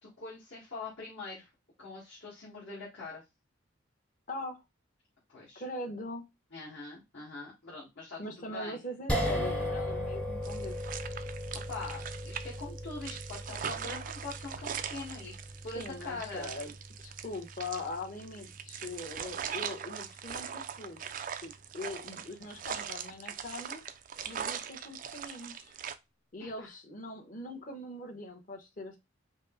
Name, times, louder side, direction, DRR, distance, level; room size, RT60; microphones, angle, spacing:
voice 1, 0.0-1.5 1.8-3.2 5.3-5.6 6.5-8.8 11.7-15.4 15.6-16.6 26.4-26.7, left 3 dB, 65° left, -7 dB, 1.7 m, -43 dB
voice 2, 4.3-4.6 5.5-6.2 8.2-11.0 15.8-16.7 17.0-21.0 21.4-23.8 24.3-25.7 26.3-29.0, left 1 dB, 40° left, 2 dB, 1.0 m, -41 dB
sound 1, 9.1-21.4, equal, 5° left, 0.6 m, -39 dB
sound 2, 10.4-26.0, right 8 dB, 40° right, 0.3 m, -41 dB
5.2 x 2.1 x 3.7 m, 0.23 s
head